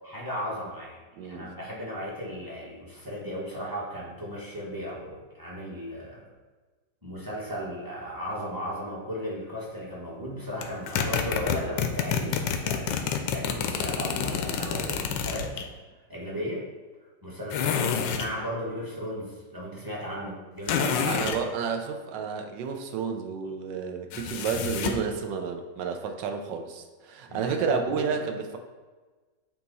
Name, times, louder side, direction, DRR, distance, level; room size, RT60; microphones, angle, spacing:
voice 1, 0.0-6.3 7.0-15.5 16.1-16.6 17.2-21.1 27.3-28.2, equal, 15° right, -5 dB, 1.0 m, -35 dB
voice 2, 1.2-1.5 21.0-28.6, right 6 dB, 85° right, 6 dB, 1.3 m, -31 dB
sound 1, 10.6-15.7 17.5-18.3 20.7-21.4 24.1-25.1, left 7 dB, 85° left, 1.3 m, -28 dB
8.3 x 2.9 x 4.0 m, 1.3 s
omnidirectional pair, 1.9 m